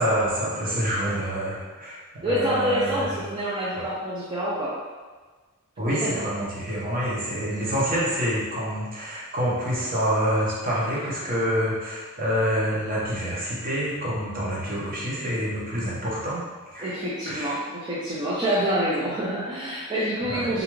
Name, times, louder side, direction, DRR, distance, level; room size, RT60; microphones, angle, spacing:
voice 1, 0.0-3.2 3.7-3.8 5.8-16.5 16.7-16.9 17.3-17.6 20.2-20.6, equal, 40° right, -7 dB, 0.8 m, -27 dB
voice 2, 2.2-4.7 5.9-6.3 16.8-20.6, equal, 20° right, -8 dB, 0.4 m, -27 dB
2.5 x 2.3 x 3.0 m, 1.4 s
head